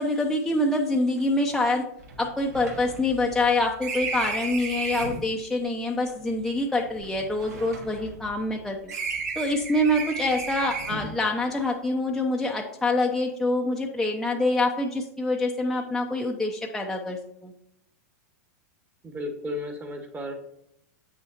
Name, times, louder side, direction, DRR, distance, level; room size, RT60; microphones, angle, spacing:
voice 1, 0.0-1.8 2.2-8.9 9.4-17.2 17.4-17.5, left 2 dB, 5° left, 0 dB, 0.7 m, -26 dB
sound 1, 1.2-1.3 1.5-1.6 2.0-5.3 6.1-8.5 8.9-11.2, right 4 dB, 85° right, 1.8 m, -34 dB
voice 2, 19.0-20.3, left 1 dB, 20° right, 4 dB, 1.4 m, -34 dB
8.1 x 6.2 x 2.9 m, 0.75 s
hypercardioid pair, 110°, 9 cm